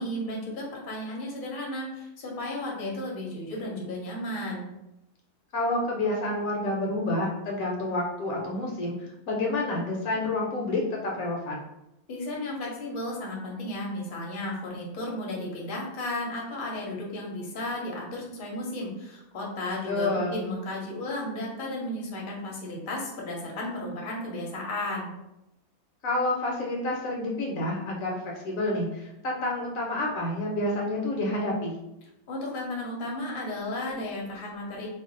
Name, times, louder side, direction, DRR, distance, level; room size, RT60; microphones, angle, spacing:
voice 1, 0.0-4.7 12.1-25.1 32.3-34.9, left 1 dB, 45° left, -3 dB, 0.7 m, -34 dB
voice 2, 5.5-11.7 19.9-20.4 26.0-31.8, left 2 dB, 70° left, -1 dB, 1.0 m, -29 dB
2.5 x 2.2 x 3.7 m, 0.89 s
omnidirectional pair, 1.6 m